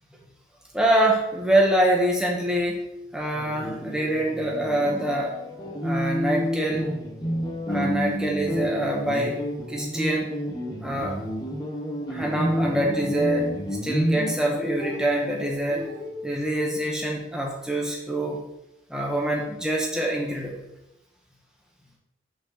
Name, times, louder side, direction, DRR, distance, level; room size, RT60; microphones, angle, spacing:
voice 1, 0.7-2.8 3.1-5.3 5.8-6.9 7.7-9.4 9.7-10.3 10.8-11.2 12.1-13.5 13.8-15.9 16.2-18.4 18.9-20.6, right 1 dB, 5° right, -2 dB, 1.4 m, -25 dB
sound 1, 3.3-16.6, equal, 20° left, 1.2 m, -30 dB
5.9 x 4.5 x 6.3 m, 0.85 s
head